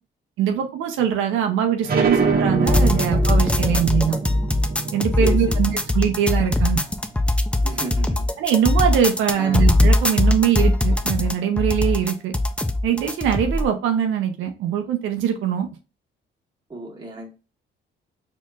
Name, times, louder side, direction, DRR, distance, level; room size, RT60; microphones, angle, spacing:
voice 1, 0.4-4.2 4.9-6.8 8.4-12.3 12.8-15.7, right 9 dB, 90° right, 5 dB, 0.6 m, -22 dB
sound 1, 1.8-7.1, right 4 dB, 50° right, 1.0 m, -25 dB
sound 2, 2.7-13.7, left 1 dB, 5° left, 0.4 m, -20 dB
voice 2, 5.2-5.6 7.6-8.2 9.3-9.6 16.7-17.3, right 2 dB, 20° right, -2 dB, 1.5 m, -33 dB
4.3 x 2.9 x 2.4 m, 0.32 s
cardioid pair, 90°, 20 cm